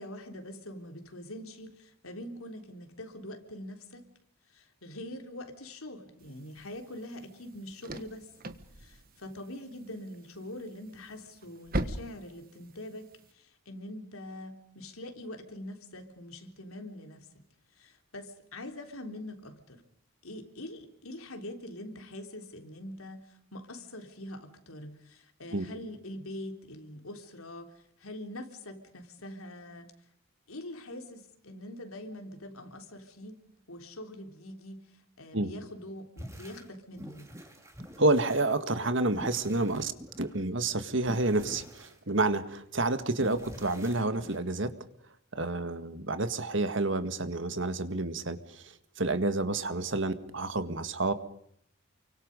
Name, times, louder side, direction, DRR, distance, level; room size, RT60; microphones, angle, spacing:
voice 1, 0.0-4.1 4.5-8.3 8.8-17.5 17.7-19.8 20.2-29.9 30.5-33.4 33.7-37.3, left 1 dB, 90° left, 5 dB, 3.7 m, -44 dB
sound 1, 6.2-13.3, right 1 dB, 45° right, 1.6 m, -41 dB
sound 2, 36.2-36.7 36.9-38.5 39.0-40.4 41.0-42.6 43.2-44.4, equal, 15° right, 3.0 m, -47 dB
voice 2, 38.0-39.9 40.2-44.7 45.3-48.6 49.0-51.1, right 2 dB, 60° right, 10 dB, 1.8 m, -29 dB
29.5 x 24.5 x 5.4 m, 0.69 s
head